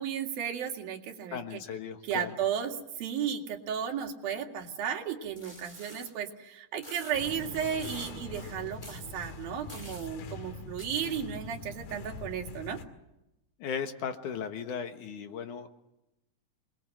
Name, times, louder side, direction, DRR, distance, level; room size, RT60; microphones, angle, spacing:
voice 1, 0.0-1.6 2.0-12.8, right 8 dB, 85° right, 3 dB, 4.1 m, -34 dB
voice 2, 1.3-2.3 13.6-15.7, left 7 dB, 65° left, 7 dB, 2.8 m, -36 dB
sound 1, 5.3-6.1 6.8-7.1 7.8-8.2 8.8-9.0 9.7-10.1 10.8-10.9, equal, 10° left, 5.1 m, -47 dB
sound 2, 7.1-12.8, left 3 dB, 80° left, 4.0 m, -43 dB
28.0 x 20.5 x 7.8 m, 0.92 s
omnidirectional pair, 4.1 m